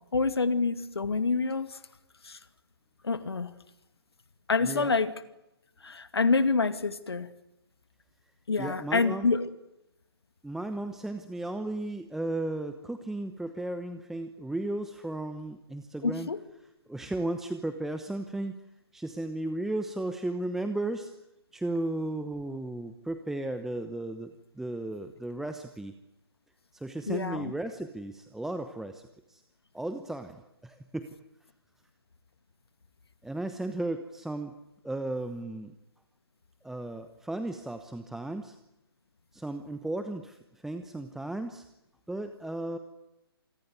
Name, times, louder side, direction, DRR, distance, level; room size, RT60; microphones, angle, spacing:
voice 1, 0.1-1.8 2.2-2.4 3.0-3.5 4.5-5.1 5.8-7.3 8.5-9.5 16.0-16.4 27.1-27.5, left 4 dB, 75° left, 11 dB, 2.4 m, -27 dB
voice 2, 4.6-4.9 8.6-9.3 10.4-16.3 16.9-18.6 18.9-21.1 21.5-26.0 26.7-29.4 29.7-31.2 33.2-34.5 34.8-35.7 36.6-38.6 39.3-41.6 42.1-42.8, right 2 dB, 5° right, 9 dB, 1.0 m, -35 dB
27.5 x 19.5 x 9.6 m, 0.89 s
figure-of-eight pair, 135°, 13 cm